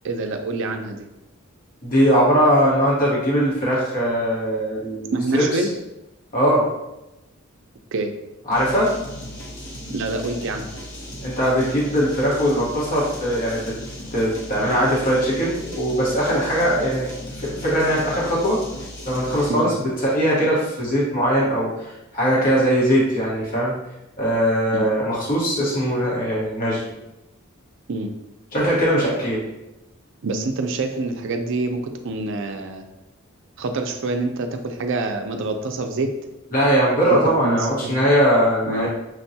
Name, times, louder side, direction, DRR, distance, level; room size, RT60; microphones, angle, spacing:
voice 1, 0.0-1.1 5.1-5.7 7.9-8.1 9.9-10.7 14.6-14.9 19.5-19.7 24.7-24.9 27.9-28.1 30.2-32.8 33.6-36.1 37.1-37.2 37.4-37.9 38.7-38.9, right 3 dB, 60° right, 5 dB, 0.5 m, -26 dB
voice 2, 1.8-5.5 6.3-6.7 8.5-8.9 11.2-13.7 14.1-17.1 17.4-18.6 19.0-23.7 24.2-26.9 28.5-29.4 36.5-38.9, equal, 45° left, -6 dB, 1.2 m, -20 dB
sound 1, 8.5-19.7, equal, 60° left, 1.0 m, -36 dB
6.2 x 2.2 x 2.7 m, 0.94 s
head